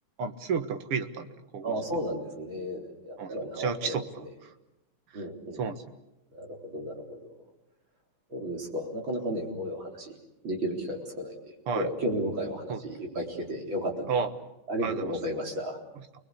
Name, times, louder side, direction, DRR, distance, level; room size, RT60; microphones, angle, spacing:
voice 1, 0.2-1.8 3.2-4.1 4.4-4.5 5.1-5.2 5.6-5.8 11.7-11.9 12.7-12.8 14.1-14.3 14.8-15.1, right 6 dB, 90° right, 9 dB, 2.4 m, -32 dB
voice 2, 1.6-3.9 5.1-5.6 6.3-7.3 8.3-10.2 10.4-14.1 14.7-15.8, equal, 60° right, 1 dB, 4.8 m, -33 dB
29.0 x 21.0 x 8.5 m, 0.92 s
omnidirectional pair, 2.4 m